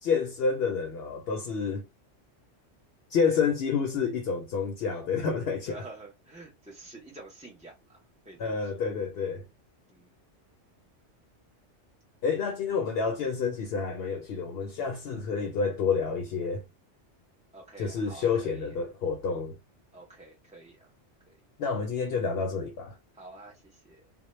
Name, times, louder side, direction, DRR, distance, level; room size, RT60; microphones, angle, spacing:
voice 1, 0.0-1.8 3.1-5.8 8.4-9.5 12.2-16.6 17.8-19.6 21.6-23.0, left 5 dB, 65° left, 0.7 m, -29 dB
voice 2, 5.7-8.0 8.2-8.8 9.9-10.1 15.0-15.2 17.5-18.8 19.9-20.9 21.3-21.4 23.1-24.1, right 2 dB, 10° right, 0.4 m, -48 dB
2.2 x 2.1 x 3.0 m
omnidirectional pair, 1.2 m